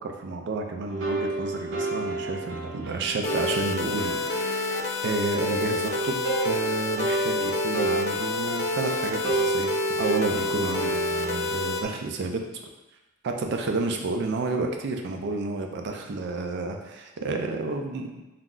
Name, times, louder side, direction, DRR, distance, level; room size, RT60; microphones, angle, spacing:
voice 1, 0.0-12.4 13.2-18.2, right 3 dB, 55° right, 3 dB, 0.3 m, -31 dB
sound 1, 0.9-11.8, right 2 dB, 75° right, 0.7 m, -30 dB
sound 2, 3.2-11.8, left 3 dB, 55° left, 0.3 m, -29 dB
2.3 x 2.0 x 3.6 m, 1.0 s
head